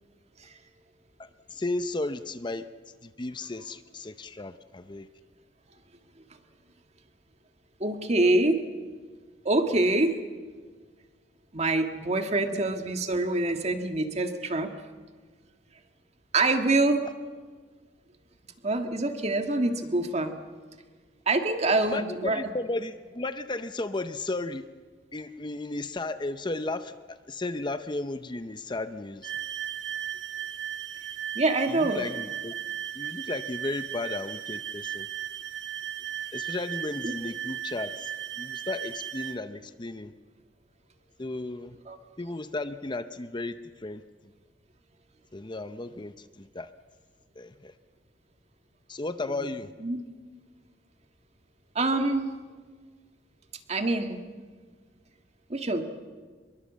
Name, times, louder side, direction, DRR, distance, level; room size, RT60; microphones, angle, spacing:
voice 1, 1.2-2.7 3.0-5.1 21.8-24.6 25.1-29.4 31.7-32.5 32.9-35.1 36.3-38.1 38.4-40.1 41.2-41.8 42.2-44.0 45.3-46.7 47.4-47.7 48.9-49.7, left 2 dB, 25° left, 11 dB, 0.7 m, -34 dB
voice 2, 7.8-8.6 9.5-10.2 11.5-14.7 16.3-17.1 18.6-20.3 21.3-22.4 31.4-32.0 37.0-37.1 41.9-42.0 49.3-49.4 49.8-50.0 51.8-52.3 53.7-54.2 55.5-55.8, right 2 dB, 35° right, 6 dB, 1.9 m, -25 dB
sound 1, 29.2-39.4, right 10 dB, 80° right, 1.2 m, -36 dB
25.5 x 22.5 x 7.5 m, 1.5 s
head